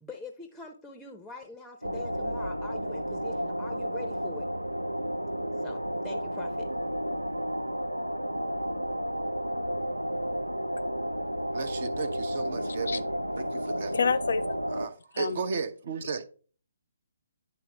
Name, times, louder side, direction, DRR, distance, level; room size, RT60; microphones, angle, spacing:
voice 1, 0.0-4.5 5.6-6.7, left 3 dB, ahead, 0.7 m, -44 dB
sound 1, 1.8-14.9, equal, 90° right, 0.4 m, -32 dB
voice 2, 11.4-13.0 13.4-14.0 14.7-16.3, right 5 dB, 45° right, 0.8 m, -35 dB
voice 3, 13.9-14.8 15.1-15.4, left 5 dB, 55° left, 0.6 m, -29 dB
10.5 x 4.1 x 3.3 m
figure-of-eight pair, 135°, 0 cm